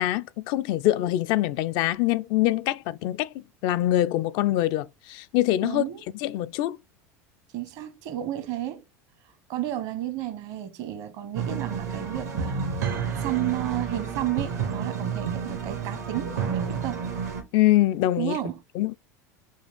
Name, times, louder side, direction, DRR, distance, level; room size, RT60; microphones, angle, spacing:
voice 1, 0.0-5.8 6.2-6.8 17.5-18.4 18.8-19.0, left 15 dB, 60° left, 0.4 m, -24 dB
voice 2, 5.6-6.0 7.5-8.8 9.5-17.0 18.2-18.6, right 13 dB, 60° right, 1.0 m, -32 dB
sound 1, 11.3-17.4, right 6 dB, 85° right, 1.4 m, -30 dB
6.2 x 2.4 x 3.5 m
hypercardioid pair, 90°, 8 cm